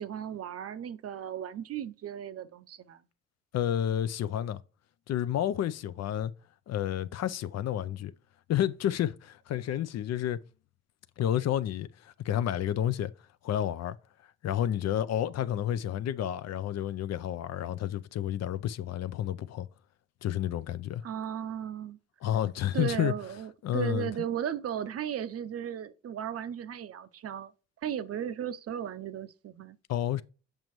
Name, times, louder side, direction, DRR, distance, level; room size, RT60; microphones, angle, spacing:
voice 1, 0.0-3.0 21.0-22.0 22.7-27.5 27.8-29.8, right 9 dB, 50° right, 0.6 m, -36 dB
voice 2, 3.5-4.6 5.1-6.3 6.7-8.1 8.5-10.4 11.2-13.1 13.4-14.0 14.4-19.7 20.2-21.0 22.2-23.1 23.6-24.1 29.9-30.2, left 11 dB, 60° left, 0.5 m, -30 dB
7.5 x 5.3 x 3.0 m
cardioid pair, 90°, 30 cm